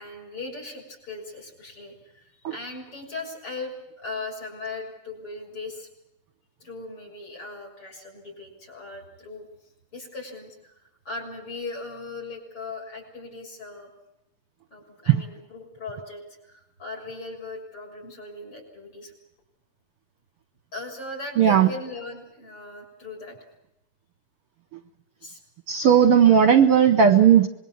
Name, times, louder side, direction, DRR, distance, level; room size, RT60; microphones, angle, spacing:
voice 1, 0.0-5.9 6.6-9.5 9.9-10.7 11.1-13.9 14.7-19.1 20.7-23.5 25.2-25.4, left 3 dB, 45° left, 0 dB, 7.4 m, -38 dB
voice 2, 21.4-21.7 25.7-27.5, right 8 dB, 65° right, 9 dB, 1.6 m, -16 dB
26.0 x 22.0 x 7.2 m, 0.88 s
omnidirectional pair, 3.5 m